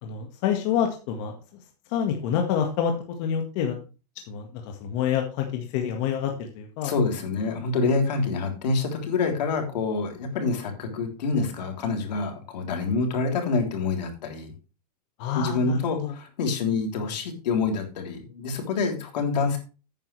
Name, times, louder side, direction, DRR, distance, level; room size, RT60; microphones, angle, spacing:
voice 1, 0.0-1.3 1.9-3.8 4.3-6.9 15.2-16.2, left 8 dB, 45° left, 3 dB, 1.7 m, -27 dB
voice 2, 6.8-14.5 15.3-19.6, left 4 dB, 80° left, 3 dB, 3.5 m, -26 dB
11.0 x 9.3 x 3.3 m, 0.33 s
supercardioid pair, 155°, 21 cm